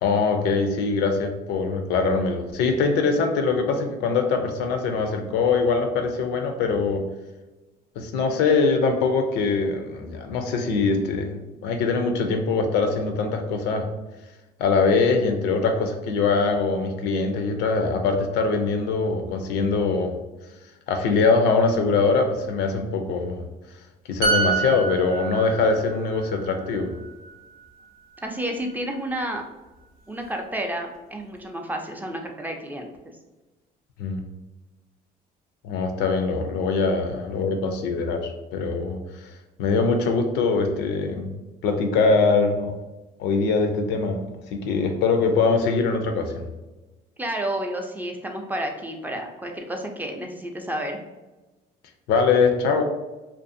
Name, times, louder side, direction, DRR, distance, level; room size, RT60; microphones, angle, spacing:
voice 1, 0.0-7.1 8.0-13.9 14.6-20.2 20.9-23.4 24.1-26.9 34.0-34.2 35.6-39.3 39.6-41.3 41.6-42.7 43.2-44.2 44.5-46.4 52.1-52.8, left 4 dB, 85° left, 6 dB, 0.5 m, -23 dB
sound 1, 24.2-27.8 28.1-28.4, right 4 dB, 60° right, 0.6 m, -28 dB
voice 2, 28.2-29.4 30.1-32.9 47.2-51.0, right 1 dB, 10° right, 2 dB, 0.4 m, -30 dB
2.5 x 2.4 x 2.5 m, 1.1 s
cardioid pair, 110°, 17 cm